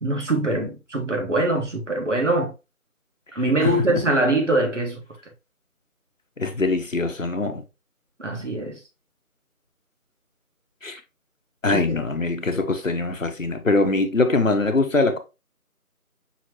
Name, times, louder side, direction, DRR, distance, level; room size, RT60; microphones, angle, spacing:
voice 1, 0.0-2.5 3.3-5.0 8.2-8.8 11.7-12.0, right 2 dB, 55° right, 1.6 m, -23 dB
voice 2, 3.6-4.0 6.4-7.6 10.8-11.0 11.6-15.2, left 3 dB, 60° left, 1.0 m, -23 dB
5.8 x 3.0 x 3.0 m
figure-of-eight pair, 175°, 45 cm